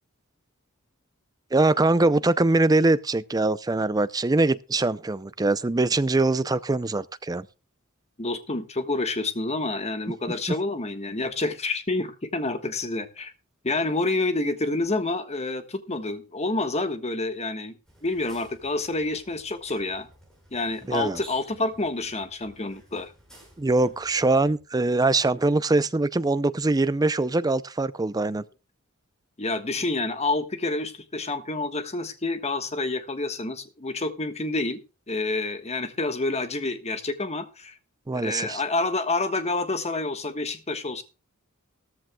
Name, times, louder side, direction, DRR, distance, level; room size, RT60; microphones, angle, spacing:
voice 1, 1.5-7.5 10.3-10.4 20.9-21.2 23.6-28.4 38.1-38.6, right 2 dB, 20° right, 0.5 m, -23 dB
voice 2, 8.2-13.3 13.6-17.7 18.0-20.1 20.5-23.1 29.4-34.8 35.1-37.8 38.1-41.0, left 2 dB, 30° left, 1.3 m, -28 dB
sound 1, 17.9-24.6, right 1 dB, 5° left, 6.0 m, -53 dB
16.5 x 14.0 x 2.3 m
head